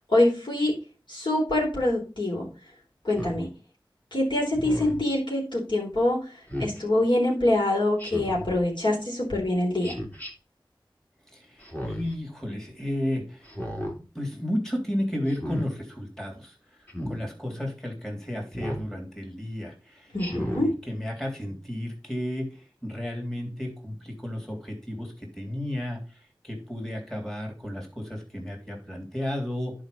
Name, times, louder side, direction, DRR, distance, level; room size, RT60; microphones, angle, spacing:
voice 1, 0.1-0.7 1.1-2.5 3.0-3.5 4.1-6.2 6.6-9.9 20.1-20.7, left 1 dB, 60° left, -3 dB, 4.3 m, -24 dB
Speech synthesizer, 3.1-3.4 4.5-5.0 6.5-6.8 8.0-8.5 9.8-10.3 11.6-12.1 13.4-13.9 15.3-15.7 16.9-17.2 18.5-18.9 20.2-20.7, equal, 20° left, 2.7 m, -33 dB
voice 2, 11.3-13.5 14.1-16.5 17.1-22.5 22.8-26.0 26.4-29.7, left 1 dB, 5° left, 0 dB, 3.4 m, -33 dB
10.5 x 5.2 x 5.3 m, 0.34 s
wide cardioid pair, 50°, 9 cm